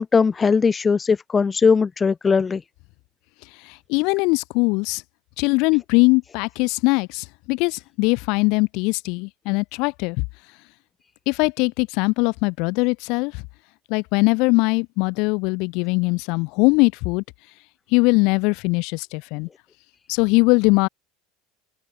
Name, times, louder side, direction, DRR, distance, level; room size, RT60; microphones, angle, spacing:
voice 1, 0.0-2.6, left 5 dB, 25° left, 1.7 m, -19 dB
voice 2, 3.6-5.0 5.4-10.2 11.3-13.4 13.9-17.2 17.9-19.5 20.1-20.9, left 28 dB, 60° left, 2.5 m, -21 dB
hypercardioid pair, 75°, 0 cm